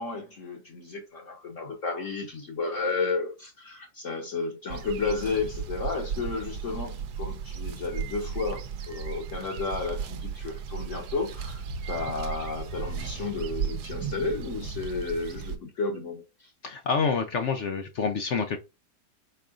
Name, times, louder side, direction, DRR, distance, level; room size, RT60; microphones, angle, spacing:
voice 1, 0.0-8.6 8.9-16.5, left 4 dB, 50° left, 1.2 m, -32 dB
sound 1, 4.7-15.6, right 6 dB, 70° right, 1.3 m, -35 dB
voice 2, 16.6-18.6, left 5 dB, 70° left, 0.6 m, -27 dB
4.8 x 4.6 x 2.4 m
omnidirectional pair, 1.9 m